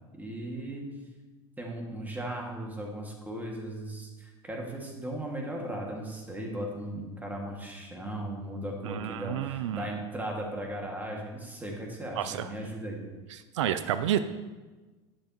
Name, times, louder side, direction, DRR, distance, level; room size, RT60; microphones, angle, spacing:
voice 1, 0.1-0.9 1.6-13.0, right 1 dB, 10° right, -1 dB, 2.0 m, -37 dB
voice 2, 8.8-9.9 12.2-12.5 13.3-14.2, right 11 dB, 90° right, 12 dB, 0.4 m, -30 dB
10.0 x 7.0 x 3.0 m, 1.3 s
hypercardioid pair, 95°, 15 cm